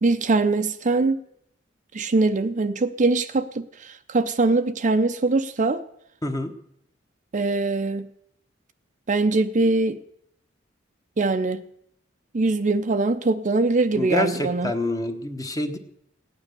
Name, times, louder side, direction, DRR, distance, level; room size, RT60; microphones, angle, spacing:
voice 1, 0.0-1.2 1.9-5.8 7.3-8.1 9.1-10.0 11.2-11.6 12.3-14.7, right 3 dB, 40° right, 9 dB, 0.6 m, -22 dB
voice 2, 14.0-15.8, left 1 dB, 20° left, 7 dB, 1.1 m, -27 dB
17.0 x 9.8 x 6.8 m, 0.73 s
head